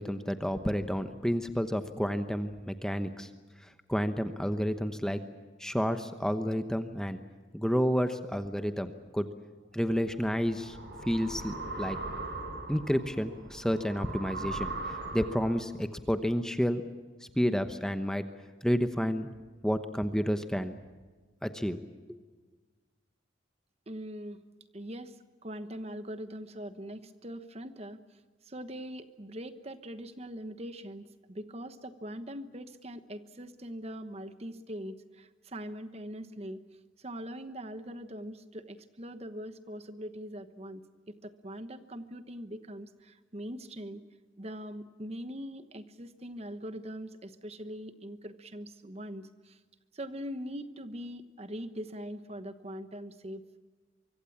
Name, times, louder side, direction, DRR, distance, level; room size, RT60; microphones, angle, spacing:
voice 1, 0.0-3.3 3.6-5.2 5.6-7.2 7.5-9.3 9.7-10.8 11.1-12.0 12.7-16.8 17.3-18.2 18.6-19.3 19.6-20.8 21.4-21.8 22.1-22.2, equal, 5° left, 8 dB, 1.0 m, -30 dB
sound 1, 9.9-15.6, right 2 dB, 55° right, 6.4 m, -40 dB
voice 2, 23.9-24.4 24.7-36.6 37.0-40.8 41.1-44.0 44.4-49.6 49.9-53.6, equal, 30° right, 11 dB, 1.1 m, -42 dB
24.0 x 24.0 x 7.3 m, 1.4 s
head